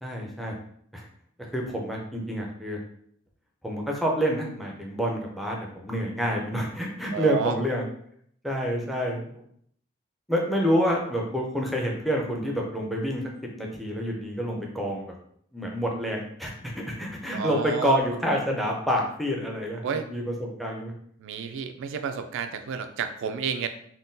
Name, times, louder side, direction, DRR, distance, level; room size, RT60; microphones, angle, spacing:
voice 1, 0.0-0.5 0.9-1.0 1.5-2.8 3.6-7.8 8.4-9.4 10.3-13.2 13.6-15.1 15.5-20.9, equal, ahead, -1 dB, 0.5 m, -28 dB
voice 2, 7.1-7.6 17.3-18.0 19.8-20.0 21.2-23.7, right 6 dB, 65° right, 8 dB, 0.3 m, -30 dB
3.6 x 2.2 x 2.6 m, 0.65 s
head